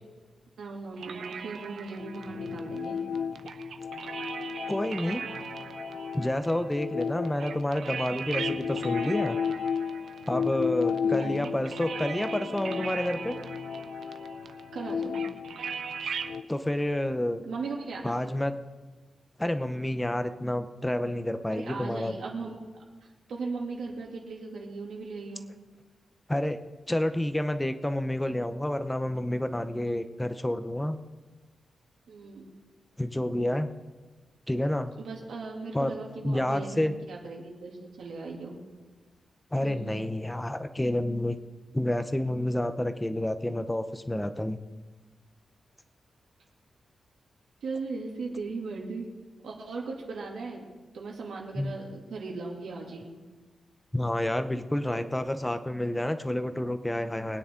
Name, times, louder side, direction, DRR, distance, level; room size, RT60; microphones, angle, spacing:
voice 1, 0.6-3.0 11.0-11.5 14.7-15.2 17.4-18.1 21.5-22.6 23.0-25.5 32.1-32.5 35.0-38.6 39.6-39.9 47.6-49.1 49.4-50.7 50.9-53.1, right 4 dB, 85° right, -2 dB, 2.6 m, -38 dB
sound 1, 1.0-16.4, right 6 dB, 65° right, 0.7 m, -40 dB
sound 2, 2.0-7.8 8.3-16.4, left 6 dB, 60° left, 0.5 m, -34 dB
voice 2, 4.7-5.2 6.1-9.4 10.3-13.4 16.0-16.2 16.5-17.4 18.0-18.7 19.4-22.1 26.3-26.6 26.9-31.0 33.0-33.7 34.5-34.9 35.7-35.9 36.2-36.9 39.5-41.4 41.7-44.6 51.6-51.7 53.9-57.4, left 1 dB, 10° left, 9 dB, 0.6 m, -29 dB
23.5 x 9.7 x 3.8 m, 1.3 s
wide cardioid pair, 180°, 0 cm